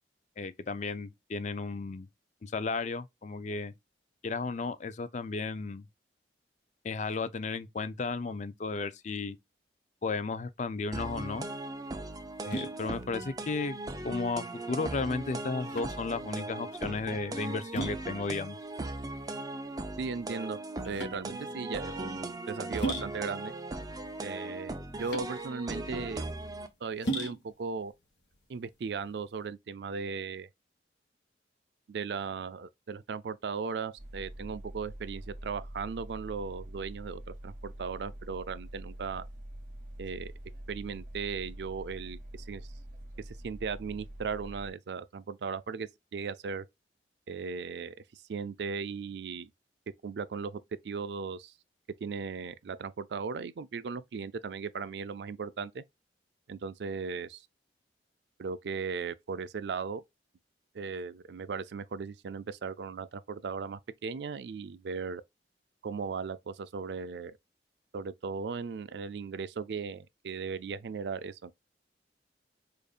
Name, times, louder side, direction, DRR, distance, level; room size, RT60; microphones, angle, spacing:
voice 1, 0.4-2.1 2.4-3.7 4.2-5.8 6.8-9.4 10.0-11.5 12.5-13.8 14.0-18.6, left 4 dB, 40° left, 0.4 m, -34 dB
sound 1, 10.9-29.5, right 1 dB, 85° left, 1.4 m, -41 dB
sound 2, 10.9-26.7, right 2 dB, 20° right, 0.5 m, -38 dB
voice 2, 20.0-20.6 20.9-23.5 24.2-24.7 25.0-26.3 26.8-27.9 28.5-30.5 31.9-39.3 40.0-40.3 40.7-42.7 43.2-46.7 47.3-49.5 50.0-51.5 52.0-55.8 56.5-57.5 58.4-60.0 60.7-65.2 65.8-67.4 67.9-71.5, right 5 dB, 70° right, 0.4 m, -37 dB
sound 3, 34.0-44.7, right 1 dB, 45° right, 1.0 m, -45 dB
5.0 x 2.5 x 2.4 m
head